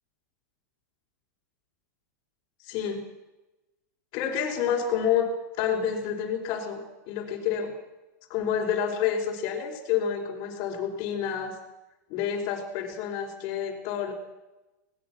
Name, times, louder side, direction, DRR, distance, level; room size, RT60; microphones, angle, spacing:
voice 1, 2.6-3.1 4.1-5.3 5.6-7.7 8.3-11.6 12.1-14.1, left 8 dB, 45° left, -3 dB, 4.6 m, -29 dB
26.0 x 20.5 x 6.3 m, 1.1 s
hypercardioid pair, 135°, 10 cm